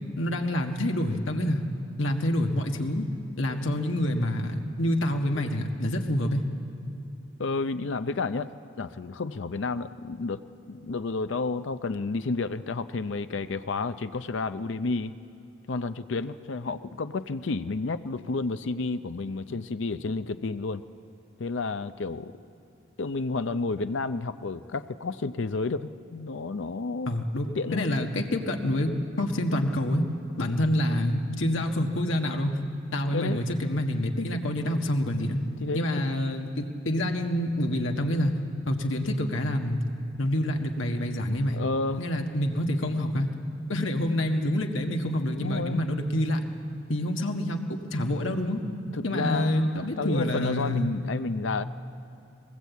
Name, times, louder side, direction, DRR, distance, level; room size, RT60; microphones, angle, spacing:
voice 1, 0.2-1.6 2.0-3.1 3.4-6.4 27.1-28.9 29.2-30.0 30.4-32.6 32.9-35.4 35.7-38.3 38.7-39.8 40.2-41.6 42.0-43.3 43.7-46.4 46.9-48.6 49.0-50.9, left 1 dB, 90° left, 3 dB, 1.6 m, -27 dB
voice 2, 7.4-8.5 8.8-15.1 15.7-20.8 21.4-22.3 23.0-27.1 27.6-27.8 33.1-33.4 35.6-35.8 41.5-42.0 45.3-45.8 48.9-51.6, left 3 dB, 70° left, 11 dB, 0.6 m, -31 dB
21.0 x 19.0 x 8.3 m, 2.7 s
head